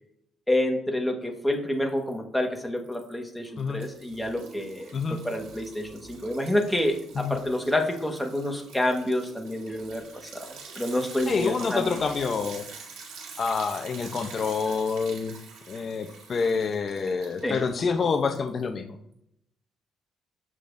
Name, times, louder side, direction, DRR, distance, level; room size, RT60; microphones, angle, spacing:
voice 1, 0.5-4.9 5.2-10.4 10.7-11.9 17.4-17.6, left 1 dB, 5° left, 3 dB, 1.4 m, -28 dB
Liquid, 1.5-2.1 2.4-18.6, right 5 dB, 85° right, 1.9 m, -46 dB
voice 2, 11.3-12.7 13.4-15.4 15.7-19.0, left 5 dB, 45° left, 6 dB, 0.6 m, -27 dB
7.5 x 6.6 x 2.6 m, 0.75 s
cardioid pair, 90°, 0 cm